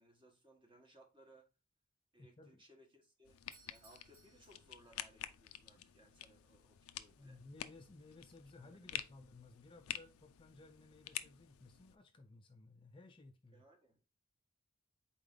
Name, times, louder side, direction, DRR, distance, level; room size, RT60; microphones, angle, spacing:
voice 1, 0.0-1.5 2.1-7.4 8.6-8.9 13.5-14.0, right 1 dB, 25° right, 1.2 m, -65 dB
voice 2, 2.2-2.6 7.2-13.7, left 2 dB, 25° left, 0.4 m, -58 dB
sound 1, 3.2-12.0, left 12 dB, 90° left, 0.4 m, -49 dB
Doorbell, 3.4-5.3, right 4 dB, 70° right, 2.1 m, -66 dB
4.4 x 3.4 x 3.6 m
head